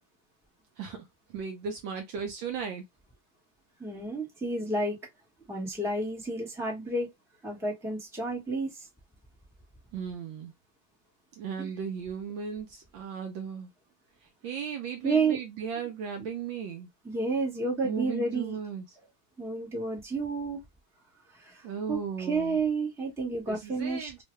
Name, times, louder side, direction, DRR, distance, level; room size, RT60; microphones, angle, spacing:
voice 1, 1.3-2.8 9.9-10.5 11.4-13.7 14.4-16.9 17.8-18.8 21.6-22.6 23.5-24.2, right 6 dB, 70° right, 1.2 m, -36 dB
voice 2, 3.8-5.0 5.5-7.1 7.4-8.9 11.6-11.7 15.0-15.4 17.0-18.6 19.4-20.6 21.3-24.1, right 3 dB, 5° right, 0.4 m, -30 dB
3.7 x 2.1 x 3.1 m
omnidirectional pair, 2.4 m